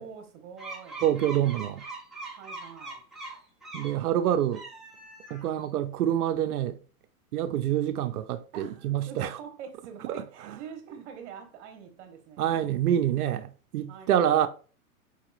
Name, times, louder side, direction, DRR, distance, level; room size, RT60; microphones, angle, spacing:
voice 1, 0.0-1.0 2.4-3.0 8.5-12.5 13.9-14.5, right 7 dB, 50° right, 1.1 m, -45 dB
sound 1, 0.6-4.0 4.4-5.6, right 3 dB, ahead, 0.4 m, -42 dB
voice 2, 1.0-1.8 3.7-4.6 5.3-6.8 7.3-9.4 10.1-10.2 12.4-14.5, right 11 dB, 80° right, 0.5 m, -26 dB
4.6 x 2.9 x 2.3 m
hypercardioid pair, 120°, 45 cm